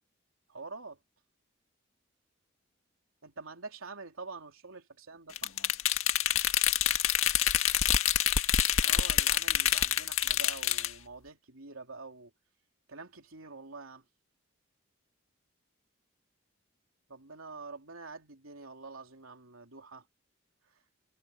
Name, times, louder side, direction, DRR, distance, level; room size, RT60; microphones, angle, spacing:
voice 1, 0.5-1.0 3.2-5.5 8.8-12.3 12.9-14.0 17.1-20.0, right 3 dB, 85° right, 3.5 m, -46 dB
sound 1, 5.4-10.9, left 10 dB, 85° left, 1.8 m, -27 dB
head